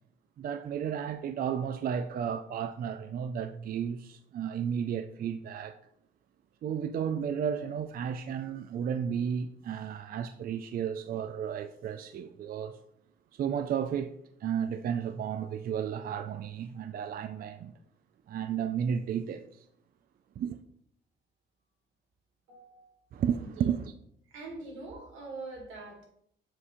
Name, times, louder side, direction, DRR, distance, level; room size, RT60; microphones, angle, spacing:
voice 1, 0.4-5.8 6.6-12.8 13.3-17.7 18.3-19.7 20.4-20.6 23.1-23.9, right 8 dB, 50° right, 0.4 m, -33 dB
voice 2, 22.5-23.0 23.3-23.7 24.3-26.1, right 3 dB, 85° right, 2.0 m, -44 dB
7.4 x 2.7 x 4.9 m
cardioid pair, 90°, 20 cm